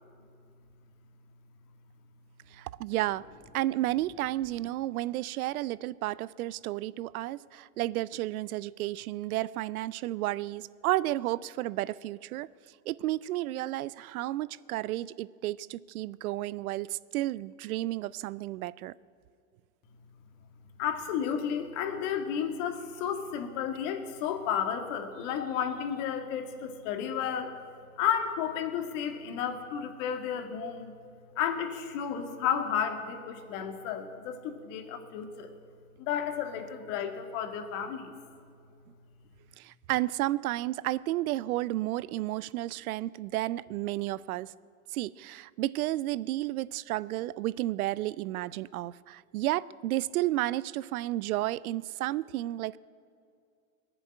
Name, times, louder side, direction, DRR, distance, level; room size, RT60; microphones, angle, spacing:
voice 1, 2.5-3.3 3.5-12.5 12.9-18.9 39.6-44.5 44.9-52.8, right 16 dB, 80° right, 21 dB, 0.5 m, -32 dB
voice 2, 20.8-27.6 28.0-30.9 31.4-35.5 36.0-38.1, left 8 dB, 60° left, 6 dB, 2.0 m, -32 dB
20.5 x 7.1 x 9.9 m, 2.3 s
hypercardioid pair, 105°, 43 cm